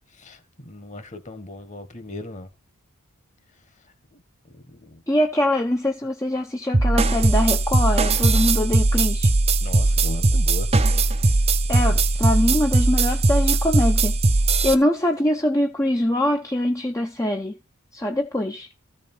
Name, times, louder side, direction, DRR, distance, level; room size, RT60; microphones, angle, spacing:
voice 1, 0.6-2.5 4.9-5.0 9.6-10.7 11.9-12.0, left 2 dB, 35° left, 1.5 m, -37 dB
voice 2, 5.1-9.3 11.7-14.2 14.6-17.5 17.9-18.7, left 1 dB, 15° left, 0.7 m, -23 dB
sound 1, 6.7-14.7, right 2 dB, 30° right, 0.7 m, -19 dB
14.0 x 5.0 x 5.5 m
head